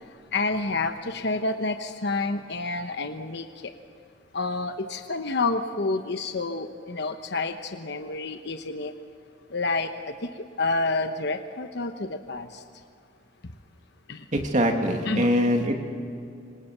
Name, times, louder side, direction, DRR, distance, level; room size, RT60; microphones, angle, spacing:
voice 1, 0.3-3.7 4.3-8.9 9.5-12.6 14.1-14.2 15.0-15.3, left 3 dB, 60° left, 7 dB, 1.0 m, -29 dB
voice 2, 14.3-15.7, equal, 40° right, 3 dB, 2.7 m, -23 dB
26.5 x 26.0 x 6.8 m, 2.4 s
head